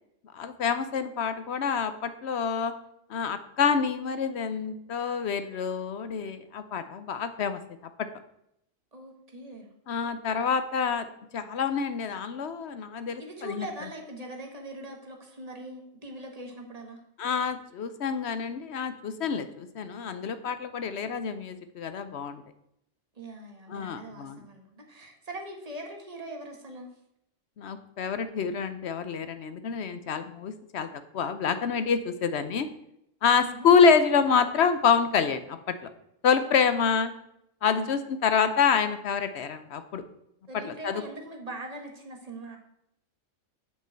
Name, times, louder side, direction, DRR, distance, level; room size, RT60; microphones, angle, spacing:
voice 1, 0.3-2.7 3.1-7.6 9.9-11.1 11.3-13.7 17.2-22.4 23.7-24.4 27.6-30.9 31.1-32.7 33.2-35.9 36.2-37.1 37.6-40.0 40.7-41.0, left 6 dB, 60° left, 11 dB, 0.9 m, -27 dB
voice 2, 8.9-9.7 13.2-17.0 23.1-26.9 33.4-33.7 36.5-36.9 37.7-37.9 40.5-42.6, right 1 dB, 30° right, 2 dB, 1.6 m, -41 dB
7.4 x 5.5 x 7.4 m, 0.78 s
omnidirectional pair, 1.4 m